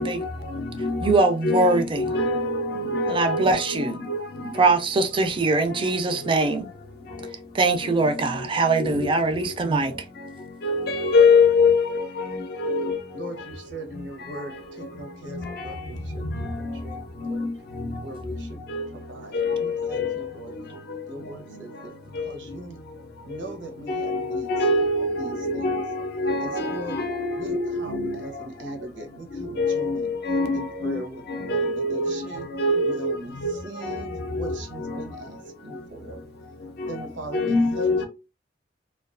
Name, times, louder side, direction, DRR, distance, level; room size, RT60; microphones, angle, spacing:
voice 1, 0.0-1.1 1.4-4.7 8.8-9.5 10.6-13.0 15.4-15.7 16.4-16.7 17.2-17.5 18.7-18.9 19.3-20.2 22.2-22.3 23.9-28.5 29.4-31.0 31.3-33.1 33.4-33.5 33.8-34.9 36.8-37.0 37.3-38.1, left 3 dB, 55° left, 0.5 m, -25 dB
voice 2, 1.0-2.0 3.1-3.9 4.5-6.7 7.5-9.9, right 3 dB, 30° right, 0.4 m, -22 dB
voice 3, 13.1-17.5 18.0-18.6 18.9-22.8 23.2-24.5 25.2-25.8 26.4-27.0 27.3-30.1 30.5-32.5 32.8-36.2 36.9-38.1, right 1 dB, 80° right, 0.7 m, -39 dB
2.3 x 2.3 x 2.4 m
head